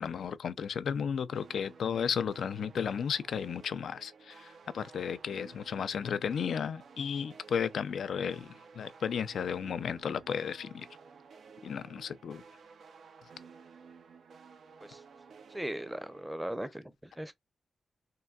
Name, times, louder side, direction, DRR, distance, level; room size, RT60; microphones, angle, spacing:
voice 1, 0.0-10.9 11.6-12.4, left 7 dB, 75° left, 0.3 m, -34 dB
sound 1, 1.3-16.3, right 5 dB, 75° right, 0.5 m, -54 dB
voice 2, 15.5-17.4, right 1 dB, 10° right, 0.6 m, -38 dB
3.6 x 2.2 x 2.2 m
cardioid pair, 65°, 0 cm